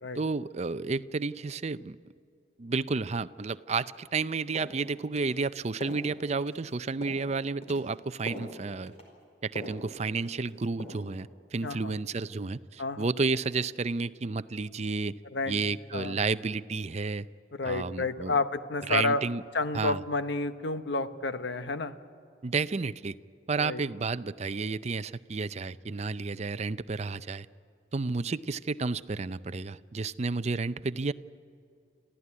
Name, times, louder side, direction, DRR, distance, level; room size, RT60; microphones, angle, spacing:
voice 1, 0.2-2.0 2.6-8.9 9.4-15.2 15.5-17.3 17.6-18.4 18.9-19.4 19.7-20.0 22.4-23.2 23.5-27.5 27.9-31.1, right 4 dB, 35° right, 14 dB, 0.5 m, -31 dB
sound 1, 4.1-4.2 4.5-4.8 5.2-5.3 5.8-6.0 6.4-6.7 7.0-7.3 7.6-7.8 8.3-8.5 8.9-9.1 9.6-9.8 10.2-10.5 10.8-11.1, equal, 35° left, 4.8 m, -42 dB
voice 2, 11.6-11.9 12.8-13.1 15.3-15.6 15.9-16.1 17.5-19.2 19.5-22.0 23.6-23.8, left 3 dB, 75° left, 10 dB, 1.0 m, -30 dB
26.5 x 15.0 x 9.6 m, 2.5 s
head